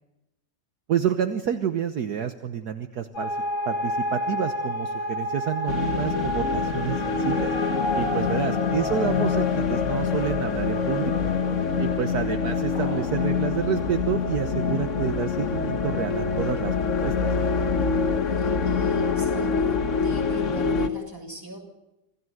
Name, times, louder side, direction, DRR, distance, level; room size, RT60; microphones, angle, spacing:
voice 1, 0.9-3.4 3.7-7.5 7.9-11.3 11.7-16.8 17.0-17.3, right 8 dB, 60° right, 9 dB, 1.5 m, -29 dB
sound 1, 3.1-13.2, left 1 dB, 90° left, 4.9 m, -31 dB
sound 2, 5.7-20.9, left 5 dB, 45° left, 1.6 m, -25 dB
voice 2, 11.5-11.8 18.2-21.6, right 2 dB, 10° right, 1 dB, 6.7 m, -40 dB
sound 3, 12.7-13.3, left 2 dB, 70° left, 6.3 m, -42 dB
27.0 x 16.5 x 7.9 m, 0.96 s
omnidirectional pair, 2.0 m